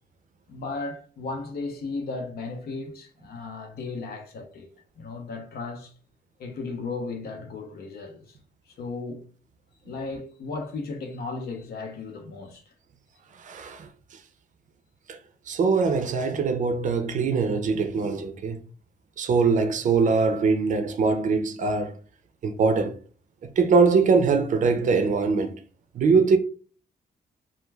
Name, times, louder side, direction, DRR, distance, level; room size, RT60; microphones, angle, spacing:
voice 1, 0.5-4.7 5.0-5.9 6.4-8.4 8.7-9.2 9.8-12.7, left 3 dB, 75° left, 0.7 m, -35 dB
voice 2, 13.4-13.9 15.1-15.2 15.5-18.6 19.2-21.9 22.4-23.0 23.4-25.5 25.9-26.4, right 4 dB, 55° right, 0.4 m, -22 dB
2.3 x 2.2 x 3.2 m
wide cardioid pair, 140°, 16 cm